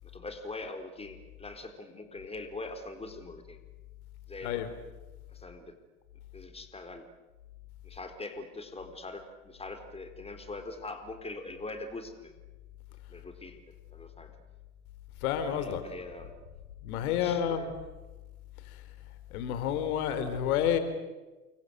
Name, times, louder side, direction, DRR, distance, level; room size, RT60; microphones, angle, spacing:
voice 1, 0.0-3.6 4.3-4.6 5.3-5.7 6.3-7.0 7.8-12.4 13.1-13.6 13.9-14.3 15.3-16.4 17.1-17.7, left 2 dB, 15° left, 7 dB, 4.0 m, -42 dB
voice 2, 15.2-15.8 16.8-17.7 19.3-20.8, left 9 dB, 65° left, 10 dB, 4.2 m, -29 dB
29.5 x 24.5 x 8.1 m, 1.1 s
hypercardioid pair, 95°, 46 cm